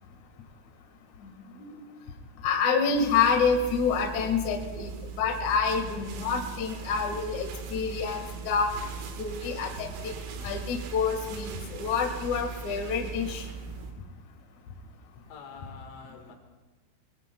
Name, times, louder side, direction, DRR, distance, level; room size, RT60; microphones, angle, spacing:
voice 1, 1.2-1.8 2.4-8.7 9.2-10.1 10.4-13.5, left 5 dB, 55° left, 2 dB, 2.1 m, -28 dB
sound 1, 3.0-13.9, right 5 dB, 85° right, 4.1 m, -39 dB
voice 2, 15.3-16.4, left 5 dB, 75° left, 3 dB, 3.9 m, -46 dB
22.5 x 22.0 x 2.3 m, 1.2 s
omnidirectional pair, 5.8 m